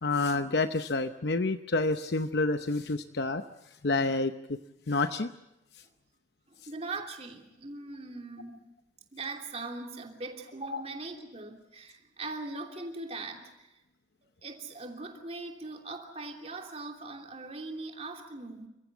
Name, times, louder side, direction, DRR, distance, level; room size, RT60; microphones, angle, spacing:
voice 1, 0.0-3.4 3.8-4.6 4.9-5.3 10.7-10.8, left 3 dB, 60° left, 9 dB, 0.8 m, -28 dB
voice 2, 6.5-8.6 9.1-13.8 14.4-18.7, right 3 dB, 35° right, 3 dB, 3.0 m, -40 dB
28.5 x 15.5 x 8.3 m, 0.92 s
head